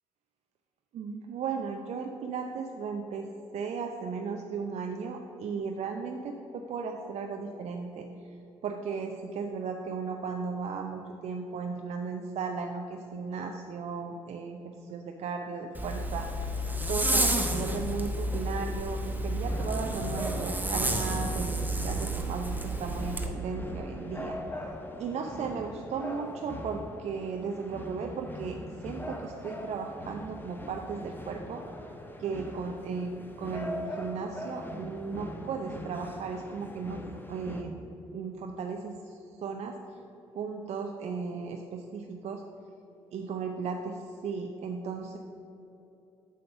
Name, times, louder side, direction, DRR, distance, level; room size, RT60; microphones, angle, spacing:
voice 1, 0.9-3.3 3.5-8.1 8.6-24.4 25.0-28.6 28.8-31.6 32.2-37.8 38.1-39.8 40.3-42.4 43.1-45.2, right 5 dB, 50° right, 3 dB, 0.6 m, -36 dB
Zipper (clothing), 15.7-23.3, right 1 dB, 10° right, 1.0 m, -30 dB
sound 1, 19.4-37.6, left 1 dB, 15° left, 1.1 m, -41 dB
7.7 x 5.2 x 5.6 m, 2.9 s
figure-of-eight pair, 45°, 14 cm